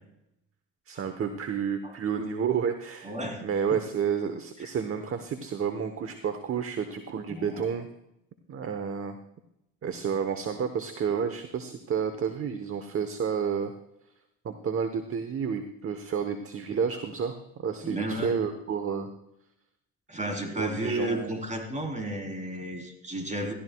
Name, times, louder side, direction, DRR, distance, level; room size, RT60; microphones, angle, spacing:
voice 1, 0.9-3.1 3.4-7.9 8.5-9.2 9.8-13.7 14.4-19.1 20.6-21.3, right 7 dB, 40° right, 9 dB, 1.0 m, -30 dB
voice 2, 3.0-3.4 3.7-3.8 4.6-4.7 7.3-7.6 17.8-18.4 20.1-23.5, right 1 dB, 20° right, 3 dB, 3.5 m, -33 dB
17.0 x 13.5 x 2.3 m, 0.80 s
cardioid pair, 85°, 33 cm